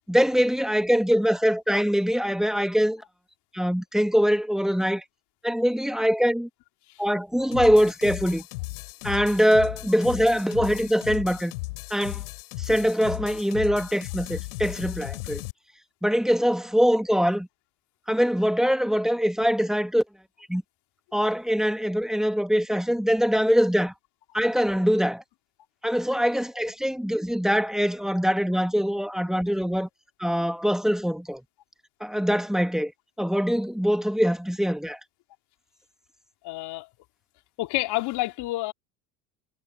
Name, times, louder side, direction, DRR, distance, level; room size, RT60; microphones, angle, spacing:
voice 1, 0.0-3.0 3.5-5.0 5.4-6.5 7.0-8.4 9.0-11.5 11.9-12.2 12.6-15.4 16.0-17.5 18.1-20.0 20.5-20.6 21.1-23.9 24.3-25.2 25.8-29.9 30.2-31.4 32.0-32.9 33.2-35.0, equal, ahead, 2.0 m, -23 dB
sound 1, 7.5-15.5, left 23 dB, 75° left, 4.2 m, -36 dB
voice 2, 36.4-36.9 37.6-38.7, left 18 dB, 55° left, 2.6 m, -29 dB
hypercardioid pair, 90°, 46 cm